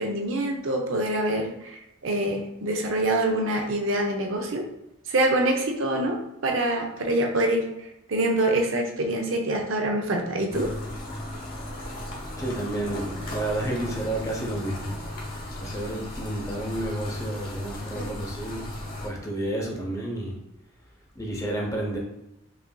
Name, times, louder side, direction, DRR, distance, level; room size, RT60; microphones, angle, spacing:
voice 1, 0.0-4.7 5.1-7.7 8.1-10.7, right 1 dB, 65° right, 2 dB, 0.5 m, -25 dB
sound 1, 10.5-19.1, left 1 dB, 45° left, 0.9 m, -36 dB
voice 2, 12.4-15.0 15.6-18.7 19.0-20.4 21.1-22.0, right 1 dB, 15° left, -1 dB, 0.6 m, -31 dB
5.3 x 2.5 x 2.2 m, 0.89 s
head